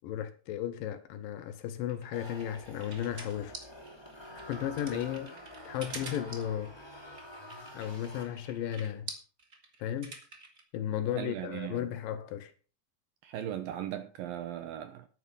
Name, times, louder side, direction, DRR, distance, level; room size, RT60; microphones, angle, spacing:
voice 1, 0.0-3.6 4.5-5.4 5.7-6.8 7.7-9.1 9.8-10.2 10.7-12.5, left 10 dB, 75° left, 2.2 m, -35 dB
sound 1, 1.9-10.6, right 3 dB, 35° right, 1.4 m, -46 dB
sound 2, 2.1-8.7, equal, 10° left, 1.8 m, -48 dB
voice 2, 11.2-11.9 13.2-15.1, right 11 dB, 70° right, 2.3 m, -38 dB
11.5 x 9.2 x 5.6 m
omnidirectional pair, 4.8 m